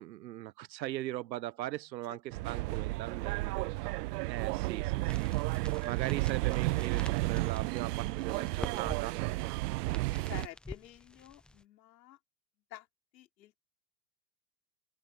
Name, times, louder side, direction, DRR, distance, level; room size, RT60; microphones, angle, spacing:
voice 1, 0.0-3.7 4.3-5.3 5.8-9.2, right 15 dB, 90° right, 1.0 m, -39 dB
voice 2, 2.1-2.7 10.3-12.2 12.7-12.9 13.1-13.6, left 14 dB, 85° left, 4.7 m, -50 dB
sound 1, 2.3-10.5, right 21 dB, 70° right, 0.6 m, -32 dB
sound 2, 5.1-11.6, left 2 dB, ahead, 0.4 m, -48 dB
open air
supercardioid pair, 130°, 50 cm